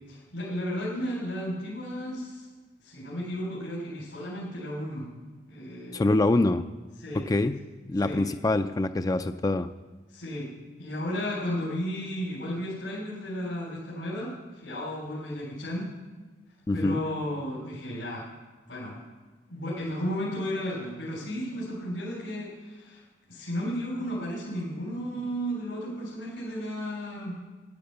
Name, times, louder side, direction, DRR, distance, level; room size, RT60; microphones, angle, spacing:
voice 1, 0.1-2.5 2.8-5.1 5.5-6.0 7.0-7.3 8.0-8.3 10.1-10.5 10.8-15.9 16.7-18.3 18.7-19.0 19.5-23.0 23.3-27.4, equal, 90° left, -5 dB, 3.5 m, -33 dB
voice 2, 5.9-6.6 7.1-7.6 7.9-9.7 16.7-17.0, left 2 dB, 20° left, 10 dB, 0.3 m, -25 dB
12.0 x 10.5 x 6.8 m, 1.3 s
head